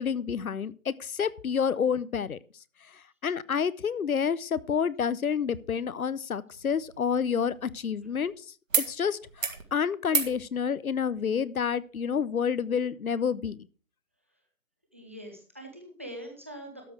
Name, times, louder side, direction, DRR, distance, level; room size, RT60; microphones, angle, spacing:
voice 1, 0.0-2.4 3.2-8.3 8.8-13.6, left 7 dB, 80° left, 19 dB, 0.8 m, -29 dB
sound 1, 6.5-8.3 8.7-8.9 9.2-9.6 10.1-10.4 11.7-11.8, right 5 dB, 65° right, 2.0 m, -32 dB
voice 2, 14.9-16.9, equal, 10° right, 2 dB, 0.7 m, -43 dB
12.5 x 6.4 x 4.9 m, 0.39 s
figure-of-eight pair, 160°, 42 cm